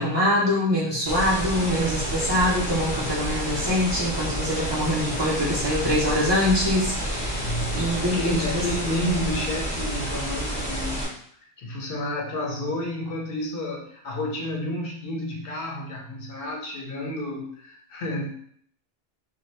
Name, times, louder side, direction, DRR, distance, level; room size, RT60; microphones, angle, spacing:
voice 1, 0.0-8.6, left 1 dB, 30° right, -7 dB, 0.7 m, -24 dB
sound 1, 1.1-11.1, equal, 5° left, 1.2 m, -29 dB
voice 2, 7.2-11.2 11.6-18.3, left 1 dB, 65° left, 0 dB, 0.7 m, -30 dB
2.7 x 2.1 x 3.2 m, 0.62 s
omnidirectional pair, 1.1 m